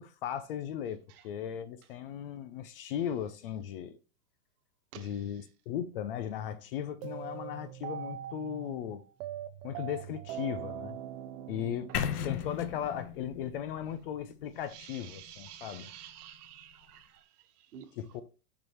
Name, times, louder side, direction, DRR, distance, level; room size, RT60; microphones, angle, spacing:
voice 1, 0.0-4.0 4.9-9.0 9.6-11.0 11.5-11.9 12.2-15.9 18.0-18.2, left 9 dB, 40° left, 0.4 m, -37 dB
voice 2, 4.9-5.5 11.9-12.1 14.7-18.0, right 10 dB, 65° right, 1.5 m, -51 dB
sound 1, 7.0-13.2, right 11 dB, 35° right, 0.5 m, -42 dB
sound 2, 11.9-15.9, left 9 dB, 75° left, 1.0 m, -37 dB
6.1 x 6.1 x 3.0 m
hypercardioid pair, 135°, 48 cm